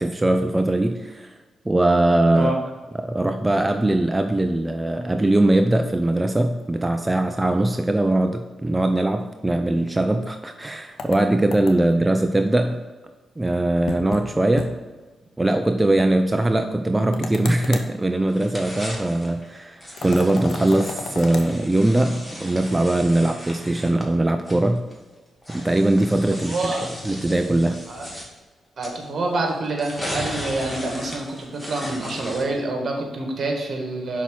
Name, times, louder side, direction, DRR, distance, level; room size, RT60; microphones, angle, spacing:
voice 1, 0.0-1.4 1.7-2.6 3.0-12.8 13.4-14.7 15.4-24.8 25.5-26.6 27.0-27.8, right 1 dB, 15° right, 7 dB, 0.4 m, -21 dB
sound 1, 11.0-12.0 13.9-14.3 14.6-14.7 15.0-15.1 17.1-17.9 20.0-21.5, left 5 dB, 75° left, 0.7 m, -33 dB
sound 2, 18.3-19.4 19.8-24.9 25.4-28.3 28.8-29.0 29.7-32.6, equal, 10° left, 1.9 m, -36 dB
voice 2, 26.3-26.9 27.9-28.1 28.8-34.2, right 2 dB, 55° right, 2 dB, 1.6 m, -27 dB
5.7 x 4.2 x 6.2 m, 1.3 s
cardioid pair, 65°, 0 cm